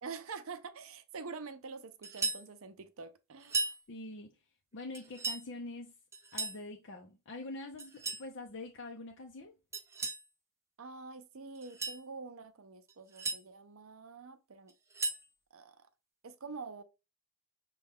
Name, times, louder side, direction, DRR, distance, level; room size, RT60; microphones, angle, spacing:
voice 1, 0.0-3.7 10.8-14.7 15.5-15.8 16.2-16.8, right 4 dB, 65° right, 0.6 m, -46 dB
sound 1, 2.0-2.5 3.4-3.8 4.9-5.4 6.1-6.6 7.8-8.3 9.7-10.2 11.6-12.0 12.9-13.4 14.7-15.3, right 3 dB, 10° right, 0.5 m, -36 dB
voice 2, 3.9-4.3 4.7-5.9 6.3-9.5, left 2 dB, 55° left, 0.6 m, -44 dB
6.5 x 2.3 x 3.5 m
head